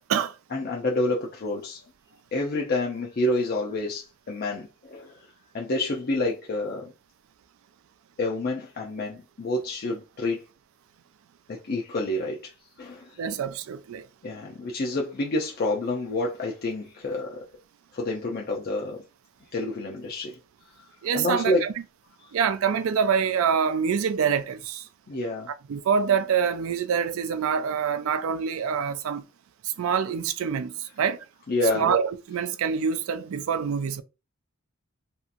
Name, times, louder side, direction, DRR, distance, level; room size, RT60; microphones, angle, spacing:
voice 1, 0.5-1.8 2.3-5.2 5.5-6.9 8.2-10.4 11.5-12.5 12.8-13.1 14.2-17.4 17.9-19.0 19.5-20.4 21.1-21.6 25.1-25.5 31.5-31.9, left 2 dB, 45° left, 0.5 m, -28 dB
voice 2, 13.2-14.1 21.0-21.7 22.3-24.9 25.5-29.2 29.6-31.2 31.7-34.0, right 7 dB, 70° right, 0.3 m, -26 dB
2.7 x 2.4 x 2.5 m
head